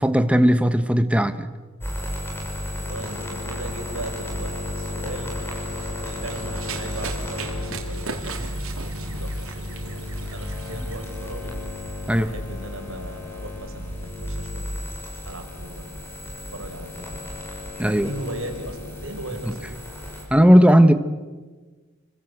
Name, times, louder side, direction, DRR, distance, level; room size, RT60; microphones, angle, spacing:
voice 1, 0.0-1.5 12.1-12.3 17.8-18.1 20.3-20.9, equal, 5° right, 1.2 m, -16 dB
sound 1, 1.8-20.2, left 1 dB, 10° left, 6.3 m, -33 dB
voice 2, 2.7-5.6 6.0-11.5 12.1-14.8 15.2-15.9 16.5-17.2 17.8-19.8, right 1 dB, 75° right, 5.3 m, -38 dB
Run, 5.5-11.0, right 4 dB, 90° right, 3.8 m, -38 dB
30.0 x 24.5 x 8.0 m
head